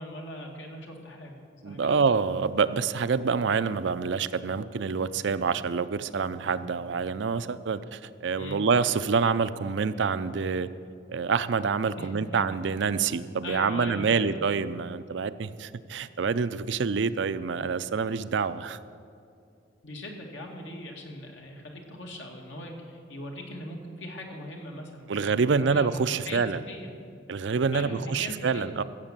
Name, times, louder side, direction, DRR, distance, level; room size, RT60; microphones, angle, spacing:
voice 1, 0.0-2.0 8.4-8.6 12.0-12.4 13.4-14.4 19.8-26.9 27.7-28.8, left 1 dB, 80° left, 0 dB, 2.1 m, -40 dB
voice 2, 1.6-10.7 11.1-18.8 25.1-26.6 27.3-28.8, right 5 dB, 70° right, 14 dB, 0.5 m, -27 dB
15.0 x 7.5 x 7.4 m, 2.5 s
head